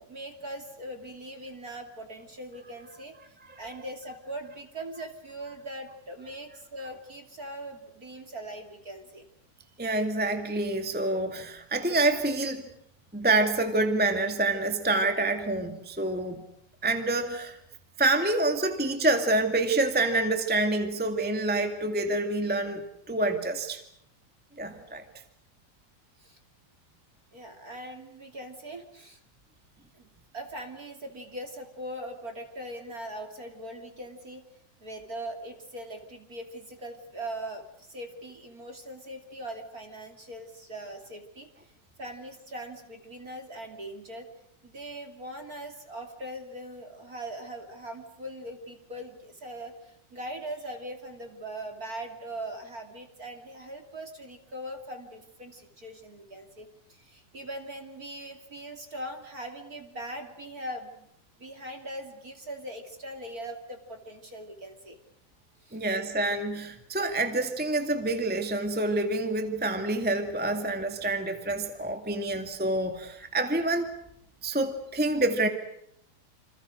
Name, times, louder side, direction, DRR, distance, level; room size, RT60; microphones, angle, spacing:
voice 1, 0.0-9.3 26.2-26.4 27.3-29.2 29.9-30.1 30.3-34.4 34.8-41.7 42.0-44.3 44.6-61.1 61.4-65.0 65.6-65.8, right 1 dB, 25° right, 5 dB, 2.6 m, -41 dB
voice 2, 9.8-12.6 13.1-16.4 16.8-17.6 18.0-23.8 24.6-25.0 65.7-73.9 74.4-75.5, right 2 dB, 5° right, 6 dB, 1.1 m, -27 dB
28.5 x 26.5 x 6.5 m, 0.74 s
omnidirectional pair, 4.3 m